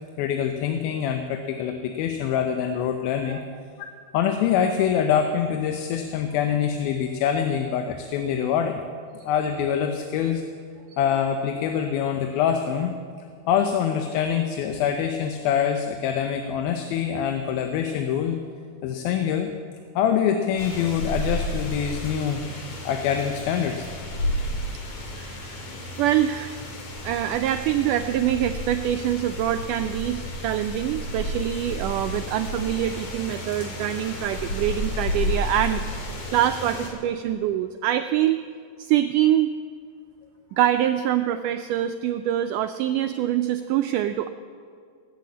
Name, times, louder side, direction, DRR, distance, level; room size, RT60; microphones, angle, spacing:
voice 1, 0.2-3.4 3.8-3.9 4.1-8.8 9.2-10.4 11.0-12.9 13.5-18.4 18.8-19.5 20.0-22.4 22.9-23.9, left 8 dB, 85° left, 6 dB, 2.7 m, -25 dB
sound 1, 20.6-36.9, left 1 dB, 50° left, 3.2 m, -32 dB
voice 2, 25.1-25.6 26.0-26.7 27.0-38.4 38.8-39.5 40.5-44.3, right 11 dB, 85° right, 8 dB, 1.8 m, -25 dB
18.5 x 8.4 x 8.4 m, 2.2 s
omnidirectional pair, 4.2 m